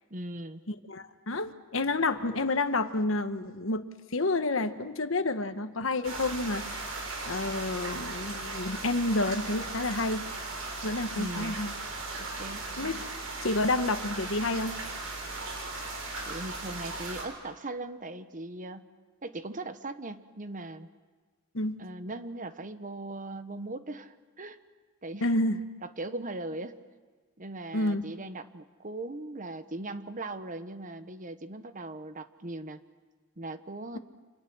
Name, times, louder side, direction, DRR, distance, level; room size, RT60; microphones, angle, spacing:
voice 1, 0.1-0.6 11.1-11.6 12.2-12.7 16.3-18.9 19.2-20.9 21.8-24.6 25.0-25.4 25.8-26.8 27.4-32.8 33.4-34.0, right 2 dB, 40° right, 10 dB, 1.2 m, -39 dB
voice 2, 0.7-6.9 7.2-10.3 10.8-11.7 12.8-13.0 13.4-14.8 21.5-21.8 25.2-25.6 27.7-28.0, left 2 dB, 65° left, 9 dB, 1.3 m, -29 dB
sound 1, 6.0-17.2, right 3 dB, 90° right, 6.5 m, -37 dB
30.0 x 27.0 x 6.3 m, 1.4 s
head